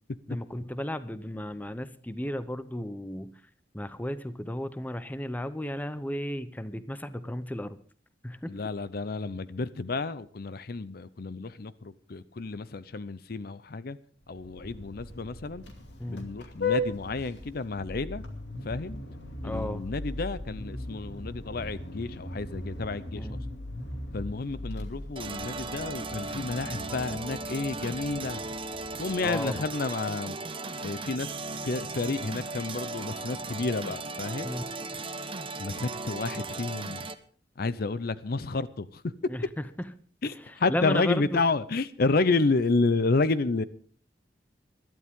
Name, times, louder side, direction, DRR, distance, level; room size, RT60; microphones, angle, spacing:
voice 1, 0.3-3.3 3.7-7.8 8.2-8.6 16.0-16.3 19.4-19.9 23.1-23.4 29.2-29.6 34.4-34.6 39.3-39.5 39.8-39.9 40.2-41.4, left 1 dB, 10° left, 0.7 m, -34 dB
voice 2, 8.5-14.0 14.3-15.6 16.1-18.2 18.6-19.0 19.4-23.4 24.1-28.4 29.0-30.4 30.8-31.3 31.6-34.5 35.6-37.1 37.6-39.1 40.2-43.6, left 3 dB, 60° left, 0.6 m, -30 dB
Vehicle horn car horn honking, 14.2-29.6, left 2 dB, 85° left, 2.6 m, -38 dB
sound 1, 25.2-37.1, right 3 dB, 30° right, 0.9 m, -37 dB
21.0 x 12.0 x 3.6 m
head